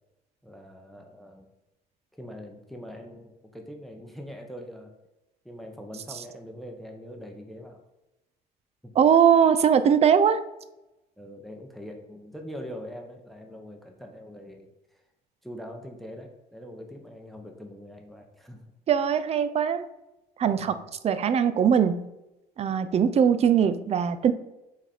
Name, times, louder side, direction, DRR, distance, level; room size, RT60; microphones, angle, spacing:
voice 1, 0.4-1.5 2.1-4.9 5.4-7.8 8.8-8.9 11.2-14.7 15.4-18.6 20.6-20.8, equal, ahead, 3 dB, 0.8 m, -43 dB
voice 2, 9.0-10.4 18.9-19.8 20.4-20.8 21.0-22.0 22.6-24.3, right 8 dB, 40° right, 13 dB, 0.4 m, -21 dB
5.8 x 4.1 x 4.3 m, 0.96 s
cardioid pair, 110°, 17 cm